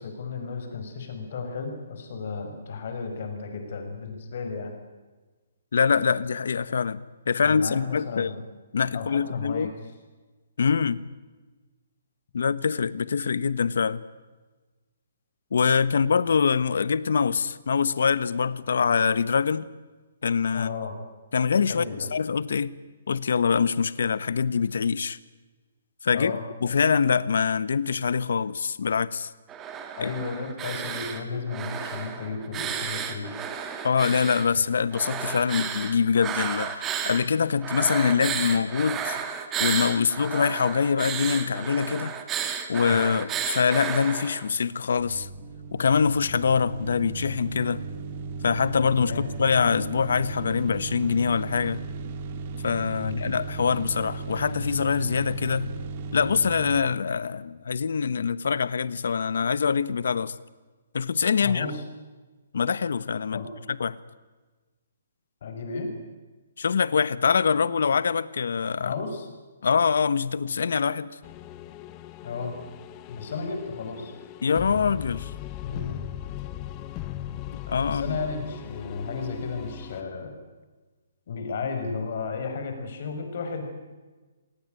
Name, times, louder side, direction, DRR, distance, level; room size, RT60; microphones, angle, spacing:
voice 1, 0.0-4.7 7.4-8.4 8.9-9.7 20.5-20.9 21.7-22.1 26.1-26.4 30.0-33.3 42.9-43.2 48.9-49.3 52.9-53.2 61.4-61.8 63.3-63.5 65.4-65.9 68.8-69.3 72.2-72.5 73.1-74.1 75.6-76.0 77.9-80.3 81.3-83.7, left 4 dB, 45° left, 6.0 m, -33 dB
voice 2, 5.7-8.3 8.7-9.7 10.6-11.0 12.3-14.0 15.5-19.7 20.2-20.7 21.3-22.7 23.1-25.2 26.0-26.3 26.6-29.3 30.0-30.1 33.8-36.7 37.0-39.2 39.6-42.1 42.7-45.3 45.7-47.8 48.4-51.8 52.6-55.7 56.1-60.3 60.9-61.7 62.5-63.4 63.8-63.9 66.6-68.9 69.6-71.1 74.4-75.3 77.7-78.2, left 6 dB, 70° left, 1.2 m, -24 dB
sound 1, 29.5-31.2 31.5-34.5 34.9-37.3 37.6-44.5, right 8 dB, 15° right, 1.9 m, -32 dB
sound 2, 45.0-56.8, right 4 dB, 30° right, 2.2 m, -36 dB
sound 3, 71.2-80.0, left 12 dB, 20° left, 1.0 m, -39 dB
27.5 x 18.5 x 9.2 m
hypercardioid pair, 170°, 0 cm